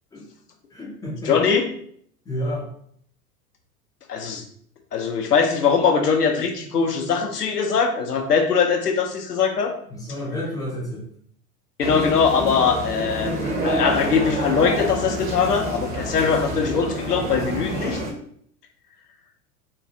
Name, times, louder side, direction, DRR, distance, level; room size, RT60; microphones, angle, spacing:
voice 1, 0.7-1.3 2.3-2.7 9.9-11.1, equal, 10° left, -4 dB, 0.4 m, -30 dB
voice 2, 1.2-1.7 4.1-4.4 4.9-9.7 11.8-18.0, left 6 dB, 85° left, 4 dB, 0.7 m, -21 dB
sound 1, 11.8-18.1, right 1 dB, 20° right, 0.7 m, -28 dB
3.7 x 2.3 x 2.7 m, 0.64 s
figure-of-eight pair, 85°, 46 cm